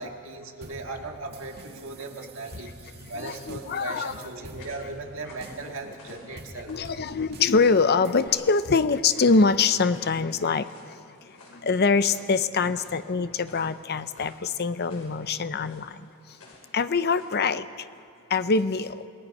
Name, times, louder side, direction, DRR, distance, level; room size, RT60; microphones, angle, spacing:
voice 1, 0.0-6.7, right 3 dB, 65° right, 2 dB, 2.0 m, -38 dB
sound 1, 0.6-8.3, right 2 dB, 50° right, 1.9 m, -47 dB
sound 2, 2.3-17.4, left 2 dB, 80° left, 5.4 m, -54 dB
voice 2, 3.0-4.6 5.4-5.5 6.2-16.4 16.7-17.9 18.3-19.0, left 4 dB, 50° left, 12 dB, 0.7 m, -25 dB
28.5 x 19.0 x 5.4 m, 2.3 s
head